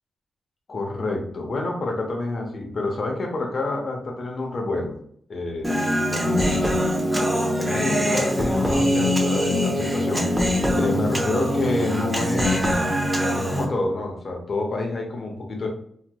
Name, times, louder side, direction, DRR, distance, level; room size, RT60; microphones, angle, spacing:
voice 1, 0.7-5.0 5.3-5.7 6.1-6.8 7.6-10.3 10.7-12.8 13.4-15.7, left 2 dB, 60° left, 1 dB, 0.7 m, -28 dB
Human voice, 5.6-13.7, equal, 15° right, 0.8 m, -23 dB
3.2 x 2.9 x 2.3 m, 0.62 s
cardioid pair, 55°, 0 cm